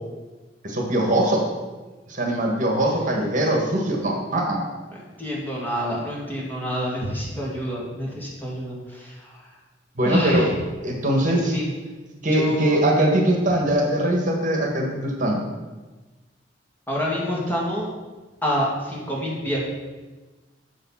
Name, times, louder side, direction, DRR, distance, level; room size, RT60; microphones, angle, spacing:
voice 1, 0.6-1.4 2.1-4.6 10.0-10.5 10.8-11.6 12.2-15.4, right 1 dB, 45° right, 1 dB, 1.5 m, -22 dB
voice 2, 5.2-9.1 10.0-10.5 11.3-11.7 12.3-12.8 16.9-17.9 18.4-19.6, equal, 10° left, -5 dB, 2.1 m, -27 dB
7.2 x 6.5 x 5.7 m, 1.2 s
head